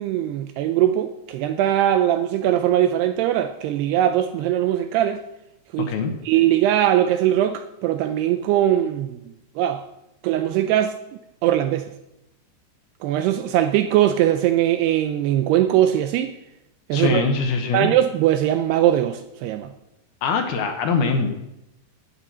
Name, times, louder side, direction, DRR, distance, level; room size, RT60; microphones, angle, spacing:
voice 1, 0.0-5.2 5.7-5.9 6.3-9.2 9.6-9.8 10.2-10.9 11.4-11.9 13.0-16.4 16.9-17.2 17.7-19.7, right 12 dB, 80° right, 2.4 m, -20 dB
voice 2, 16.9-17.9 20.2-21.3, left 4 dB, 70° left, 2.8 m, -22 dB
11.0 x 8.8 x 7.5 m
omnidirectional pair, 5.1 m